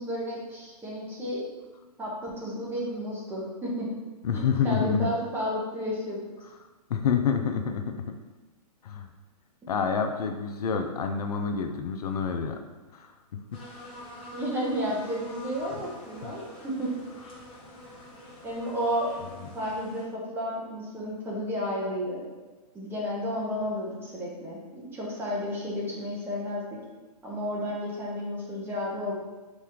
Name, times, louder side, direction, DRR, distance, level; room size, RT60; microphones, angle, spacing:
voice 1, 0.0-1.4 2.0-3.9 4.3-6.2 14.3-16.9 18.4-22.2 22.7-24.6 24.9-26.6 27.2-29.1, equal, 10° right, -6 dB, 1.1 m, -32 dB
voice 2, 4.2-5.1 6.9-8.1 8.8-9.1 9.7-12.6 12.9-13.6 16.2-16.3, left 6 dB, 65° left, 5 dB, 0.5 m, -28 dB
sound 1, 13.5-20.0, left 1 dB, 25° left, 1.1 m, -46 dB
4.2 x 3.1 x 3.7 m, 1.2 s
hypercardioid pair, 130°, 21 cm